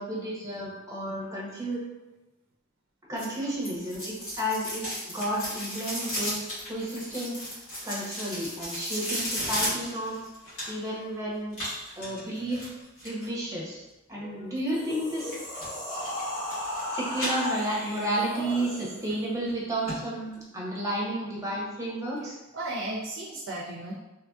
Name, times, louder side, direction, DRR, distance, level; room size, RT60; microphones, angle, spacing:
voice 1, 0.0-1.8 3.1-6.4 6.7-7.4 7.8-10.2 10.7-11.6 12.0-12.7 13.0-13.8 14.1-15.3 15.9-16.0 16.9-22.4, right 1 dB, 15° right, -4 dB, 0.6 m, -32 dB
sound 1, 3.2-11.0 11.5-13.3 15.2-15.7 16.0-16.8 17.1-18.0 18.4-18.5 19.1-19.2 19.5-19.6 19.9-20.0 20.3-20.4, equal, 75° left, 1.4 m, -34 dB
sound 2, 14.6-19.2, left 1 dB, 40° left, 1.3 m, -35 dB
voice 2, 22.2-23.9, right 2 dB, 60° right, -2 dB, 0.4 m, -35 dB
2.9 x 2.5 x 2.3 m, 1.0 s
head